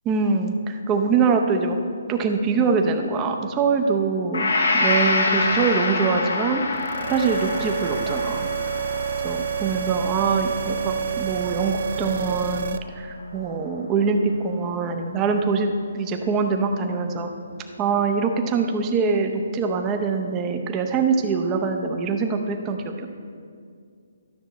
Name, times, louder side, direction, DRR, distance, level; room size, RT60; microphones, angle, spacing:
voice 1, 0.0-1.8 2.1-6.7 7.1-8.5 9.2-17.3 17.8-23.1, right 5 dB, 20° right, 4 dB, 0.7 m, -24 dB
Gong, 4.3-12.4, left 3 dB, 75° left, 1.0 m, -27 dB
sound 1, 6.8-12.8, right 7 dB, 55° right, 0.3 m, -28 dB
12.5 x 6.4 x 3.1 m, 2.2 s
hypercardioid pair, 155°, 0 cm